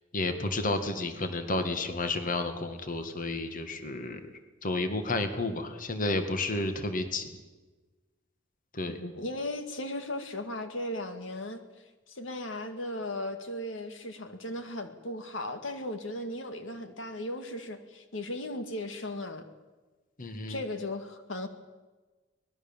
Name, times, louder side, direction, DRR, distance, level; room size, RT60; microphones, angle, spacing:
voice 1, 0.1-4.3 4.6-7.4 8.7-9.0 20.2-20.6, left 2 dB, 45° left, 8 dB, 2.0 m, -31 dB
voice 2, 8.9-11.6 12.1-19.4 20.5-21.5, left 1 dB, 75° left, 7 dB, 2.1 m, -36 dB
24.5 x 20.0 x 7.3 m, 1.2 s
head